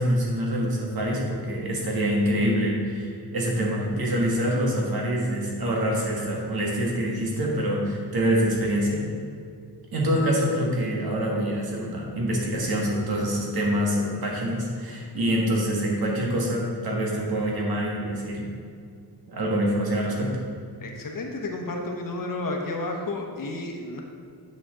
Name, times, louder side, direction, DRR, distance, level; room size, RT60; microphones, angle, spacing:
voice 1, 0.0-9.0 9.9-18.5 19.3-20.4, equal, 60° right, -2 dB, 1.9 m, -25 dB
voice 2, 20.8-24.0, left 2 dB, 50° left, 2 dB, 1.1 m, -31 dB
9.6 x 6.2 x 3.8 m, 2.2 s
wide cardioid pair, 150°, 41 cm